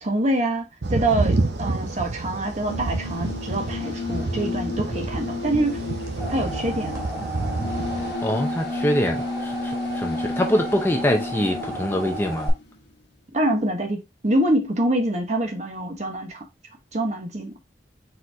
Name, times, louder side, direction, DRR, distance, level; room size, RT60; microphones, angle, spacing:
voice 1, 0.0-5.8 6.3-7.0 13.3-16.4 16.9-17.5, right 1 dB, 40° right, 1.1 m, -25 dB
sound 1, 0.8-8.1, right 2 dB, 70° right, 0.8 m, -28 dB
sound 2, 2.5-12.9, left 3 dB, 75° left, 1.3 m, -32 dB
sound 3, 5.8-12.5, right 2 dB, 15° right, 2.4 m, -34 dB
voice 2, 8.2-12.5, left 1 dB, 10° left, 0.5 m, -24 dB
4.4 x 4.1 x 2.6 m
head